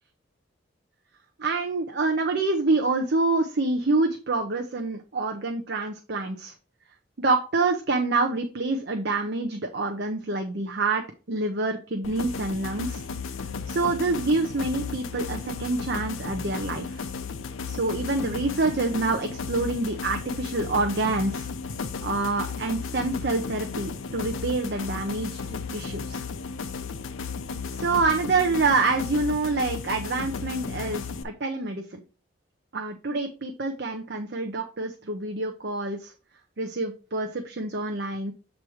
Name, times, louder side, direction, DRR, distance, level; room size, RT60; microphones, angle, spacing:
voice 1, 1.4-6.5 7.2-13.0 13.7-17.0 17.7-21.5 22.0-26.2 27.8-32.0 32.7-36.1 36.6-38.3, right 3 dB, 50° right, 4 dB, 0.7 m, -27 dB
sound 1, 12.0-31.2, left 5 dB, 80° left, 0.6 m, -34 dB
7.5 x 3.1 x 4.8 m, 0.35 s
head